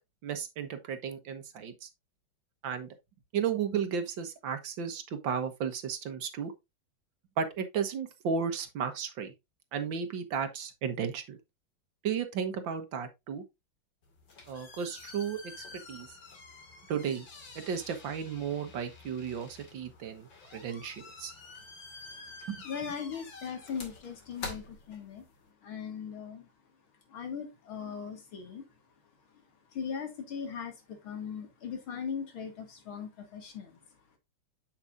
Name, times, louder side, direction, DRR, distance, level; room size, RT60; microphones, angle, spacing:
voice 1, 0.2-1.9 2.6-2.9 3.3-6.5 7.4-9.3 9.7-11.4 12.0-13.4 14.5-15.4 15.7-16.1 16.9-17.3 17.6-21.3 22.5-22.6, right 7 dB, 70° right, 1.9 m, -34 dB
sound 1, 14.0-25.5, left 3 dB, 70° left, 2.8 m, -48 dB
voice 2, 22.6-25.2 25.6-26.5 27.1-28.6 29.7-30.7 31.0-33.8, left 7 dB, 90° left, 2.8 m, -39 dB
7.6 x 7.2 x 2.5 m
omnidirectional pair, 2.2 m